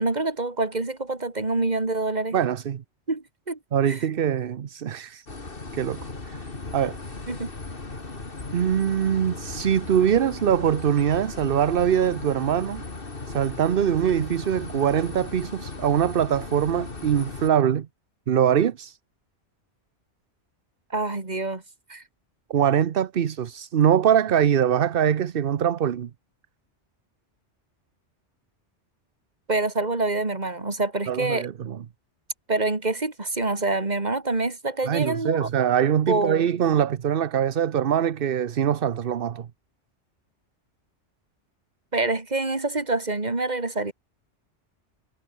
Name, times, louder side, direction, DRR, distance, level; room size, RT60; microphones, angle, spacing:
voice 1, 0.0-2.4 3.1-3.6 3.9-4.1 7.3-7.5 20.9-21.6 21.9-22.0 29.5-31.5 32.5-35.5 36.1-36.5 41.9-43.9, right 2 dB, 35° right, 2.6 m, -26 dB
voice 2, 2.3-2.8 3.7-5.3 5.7-6.0 6.3-6.4 6.7-7.0 8.5-12.8 13.3-17.9 18.3-19.0 22.5-26.1 31.1-31.8 34.8-39.5, right 9 dB, 55° right, 0.9 m, -23 dB
sound 1, 5.3-17.5, left 3 dB, 50° left, 2.7 m, -37 dB
omnidirectional pair, 1.2 m